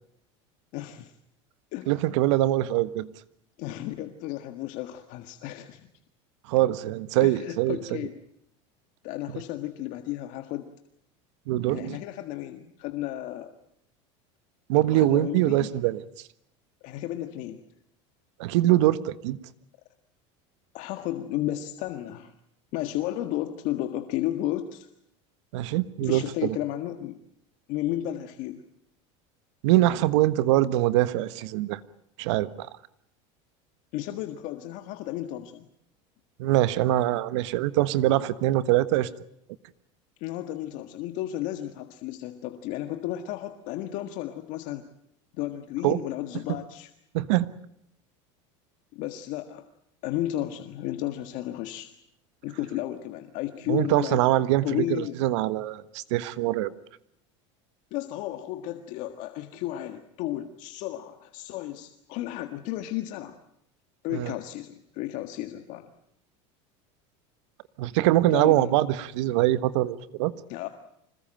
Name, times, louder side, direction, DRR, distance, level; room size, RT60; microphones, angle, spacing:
voice 1, 0.7-1.1 1.7-1.9 3.6-5.9 7.2-8.2 9.0-10.7 11.7-13.5 14.9-15.7 16.8-17.6 20.7-22.3 22.7-24.9 26.0-27.2 27.7-28.6 33.9-35.7 40.2-44.9 45.3-46.9 48.9-49.6 50.0-51.9 52.4-54.2 54.6-55.1 57.9-63.4 64.0-65.9 68.3-68.7 70.5-70.7, left 14 dB, 55° left, 8 dB, 1.7 m, -33 dB
voice 2, 1.9-3.1 6.5-7.8 11.5-12.0 14.7-16.0 18.4-19.4 25.5-26.6 29.6-31.8 32.2-32.7 36.4-39.1 45.8-46.0 47.1-47.5 53.7-56.7 64.1-64.3 67.8-70.3, right 15 dB, 75° right, 15 dB, 1.4 m, -23 dB
26.0 x 20.5 x 9.0 m, 0.74 s
supercardioid pair, 140°, 15 cm